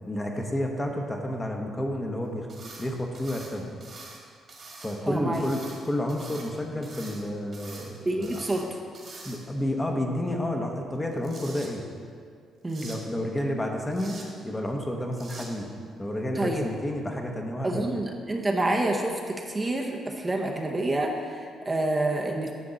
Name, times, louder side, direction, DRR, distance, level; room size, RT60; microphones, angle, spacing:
voice 1, 0.1-2.5 2.8-3.7 4.8-8.5 9.2-11.8 12.8-15.7 16.0-17.9, left 1 dB, 15° left, 2 dB, 0.9 m, -30 dB
sound 1, 2.5-2.9 3.1-4.2 4.5-5.0 5.3-6.5 6.8-7.2 7.5-7.9 8.2-8.6 8.9-9.6 10.9-11.7 12.7-13.0 13.9-14.3 15.1-15.5, right 3 dB, 50° right, 1.8 m, -45 dB
voice 2, 5.1-5.4 8.1-8.6 12.6-12.9 16.4-16.7 17.6-22.5, right 2 dB, 20° right, 1 dB, 0.8 m, -28 dB
9.7 x 6.0 x 3.9 m, 2.1 s
cardioid pair, 90°, 0 cm